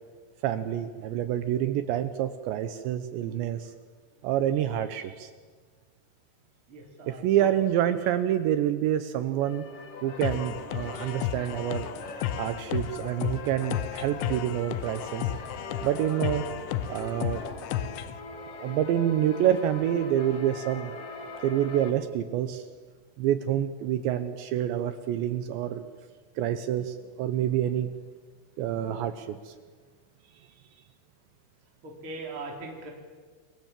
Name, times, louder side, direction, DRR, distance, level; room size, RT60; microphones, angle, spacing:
voice 1, 0.4-3.7 4.2-5.3 7.1-9.6 10.0-11.9 12.4-15.3 15.8-16.4 16.9-17.4 18.5-20.9 21.4-22.6 23.2-25.9 26.4-27.9 28.6-29.5, right 11 dB, 75° right, 10 dB, 2.8 m, -27 dB
voice 2, 6.7-7.5 31.8-32.9, right 3 dB, 30° right, -1 dB, 4.0 m, -40 dB
sound 1, 9.1-21.9, left 4 dB, 60° left, 1.6 m, -42 dB
sound 2, 10.2-18.2, left 11 dB, 75° left, 3.4 m, -33 dB
28.0 x 23.5 x 7.5 m, 1.5 s
omnidirectional pair, 5.8 m